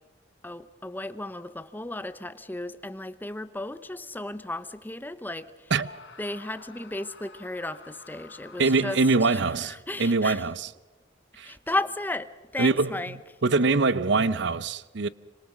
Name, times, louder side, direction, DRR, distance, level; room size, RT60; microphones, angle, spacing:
voice 1, 0.4-5.7 6.2-9.0 9.3-10.4 11.4-13.2, left 2 dB, 10° left, 0.9 m, -34 dB
Screaming, 5.7-9.5, left 4 dB, 65° left, 2.1 m, -49 dB
voice 2, 8.6-10.7 11.4-11.5 12.6-13.2 13.4-15.1, right 3 dB, 65° right, 0.7 m, -24 dB
27.0 x 26.0 x 6.2 m
head